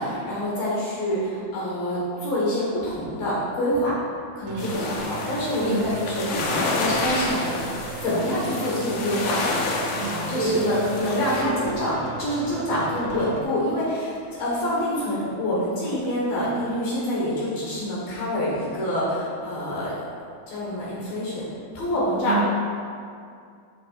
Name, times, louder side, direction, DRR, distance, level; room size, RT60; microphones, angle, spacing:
voice 1, 0.0-3.9 4.4-6.2 6.7-7.7 8.0-9.4 10.3-19.9 20.5-21.4 21.7-22.4, equal, 60° left, -7 dB, 3.0 m, -26 dB
voice 2, 4.5-5.1 5.6-6.8 10.0-11.7 22.2-22.6, right 1 dB, 65° right, -9 dB, 2.2 m, -28 dB
sound 1, 4.5-13.4, right 5 dB, 85° right, 3.1 m, -37 dB
sound 2, 4.6-11.4, left 3 dB, 80° left, 2.1 m, -29 dB
12.5 x 6.5 x 2.5 m, 2.3 s
omnidirectional pair, 5.4 m